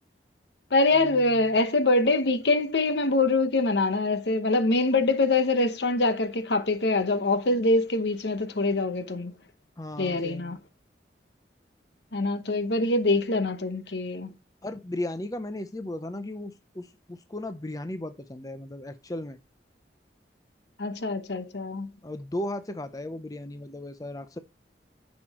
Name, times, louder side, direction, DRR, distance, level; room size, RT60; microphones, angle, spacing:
voice 1, 0.7-9.3 10.0-10.6 12.1-14.3 20.8-21.9, left 2 dB, 75° left, 1.0 m, -24 dB
voice 2, 9.8-10.6 14.6-19.4 22.0-24.4, left 1 dB, 20° left, 0.5 m, -36 dB
9.8 x 6.2 x 3.0 m
head